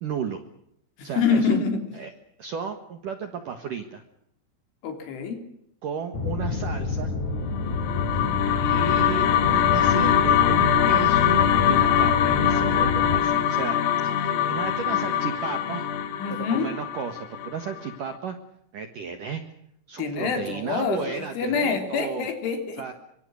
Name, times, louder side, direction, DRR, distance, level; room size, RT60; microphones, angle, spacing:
voice 1, 0.0-0.4 1.0-1.6 1.9-2.1 2.4-4.0 5.8-7.1 8.1-8.2 8.6-13.8 14.0-15.9 16.3-18.4 18.7-19.4 19.9-22.3 22.8-22.9, right 6 dB, 65° right, 7 dB, 2.2 m, -34 dB
voice 2, 1.0-1.8 4.8-5.4 16.2-16.7 20.0-22.8, left 5 dB, 70° left, 5 dB, 5.8 m, -26 dB
sound 1, 6.1-13.2, left 3 dB, 35° left, 4.8 m, -28 dB
sound 2, 7.6-17.9, left 9 dB, 85° left, 4.1 m, -22 dB
25.0 x 24.5 x 6.5 m, 0.76 s
omnidirectional pair, 5.9 m